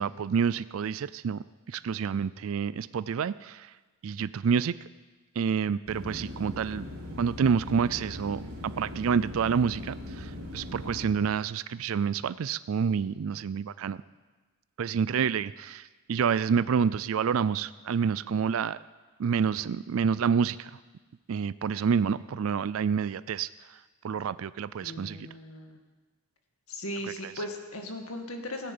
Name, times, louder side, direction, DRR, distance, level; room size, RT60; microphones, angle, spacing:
voice 1, 0.0-3.7 4.0-4.8 5.4-6.8 7.2-14.0 14.8-18.8 19.2-20.7 21.3-23.8 24.0-25.3 27.2-27.3, right 6 dB, 65° right, 17 dB, 0.4 m, -28 dB
sound 1, 5.9-11.1, left 1 dB, 85° right, 4.0 m, -40 dB
voice 2, 24.8-25.8 26.7-28.7, left 1 dB, 75° left, 4 dB, 2.1 m, -38 dB
15.5 x 10.0 x 8.8 m, 1.3 s
head